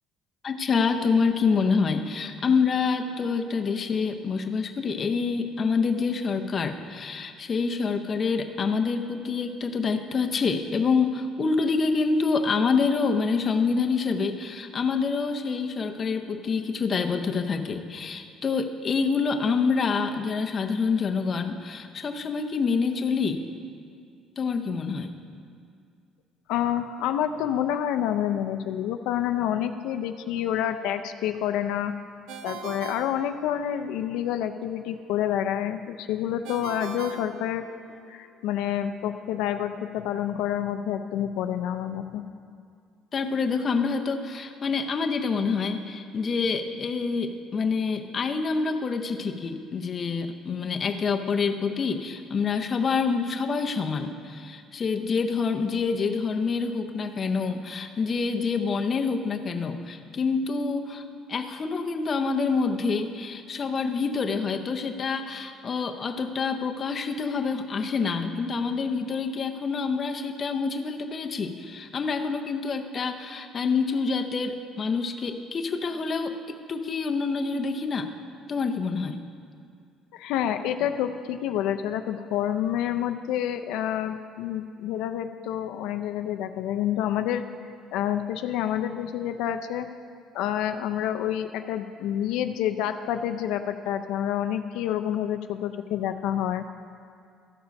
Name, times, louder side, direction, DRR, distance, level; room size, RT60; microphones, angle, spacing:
voice 1, 0.4-23.4 24.4-25.2 43.1-61.0 61.3-78.1 78.5-79.2, left 5 dB, 30° left, 5 dB, 0.6 m, -27 dB
voice 2, 26.5-31.9 32.4-37.6 38.1-42.2 80.1-87.4 87.9-89.9 90.3-96.6, left 10 dB, 80° left, 8 dB, 0.4 m, -28 dB
Ringtone, 32.3-33.9 36.4-38.1, right 5 dB, 75° right, 0.7 m, -40 dB
13.5 x 7.2 x 5.2 m, 2.3 s
cardioid pair, 170°, 0 cm